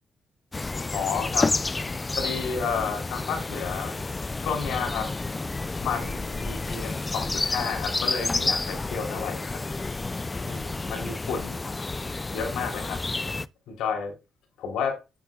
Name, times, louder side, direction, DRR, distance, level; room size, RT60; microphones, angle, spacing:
sound 1, 0.5-13.5, left 3 dB, 20° left, 0.4 m, -30 dB
voice 1, 0.9-1.5 2.2-3.9 4.4-5.1 5.8-9.6 10.5-11.7 12.3-13.0 13.7-14.1 14.6-15.0, left 6 dB, 85° left, 3 dB, 3.2 m, -31 dB
8.5 x 8.4 x 2.3 m, 0.26 s
cardioid pair, 90°, 0 cm